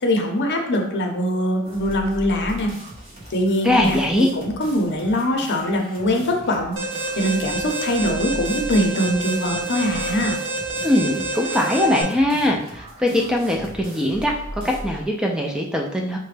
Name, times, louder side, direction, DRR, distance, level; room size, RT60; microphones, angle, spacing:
voice 1, 0.0-2.7 3.3-4.0 4.3-6.8 7.1-10.4, equal, 55° left, 3 dB, 0.6 m, -22 dB
sound 1, 1.6-15.1, equal, 30° right, 1.0 m, -39 dB
voice 2, 3.6-4.3 10.8-16.2, left 1 dB, 5° right, 0 dB, 0.3 m, -21 dB
Alarm, 6.8-12.0, right 2 dB, 65° right, 0.9 m, -28 dB
4.9 x 2.2 x 3.2 m, 0.74 s
head